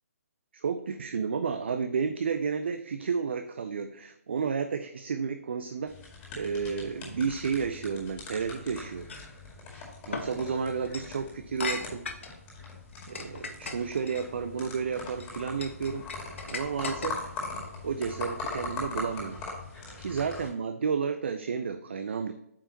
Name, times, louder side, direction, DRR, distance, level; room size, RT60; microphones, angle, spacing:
voice 1, 0.5-5.9 6.3-9.1 10.1-12.1 13.1-16.1 16.5-17.2 17.8-19.5 20.0-22.3, right 6 dB, 45° right, 9 dB, 0.5 m, -31 dB
sound 1, 5.9-20.5, left 3 dB, 15° left, 2.1 m, -41 dB
sound 2, 9.1-9.3 10.1-10.3 10.8-11.1 11.6-12.4 12.9-14.2 14.9-15.3 15.6-17.4, left 3 dB, 50° left, 1.1 m, -37 dB
8.2 x 5.5 x 2.9 m, 0.78 s
figure-of-eight pair, 135°, 8 cm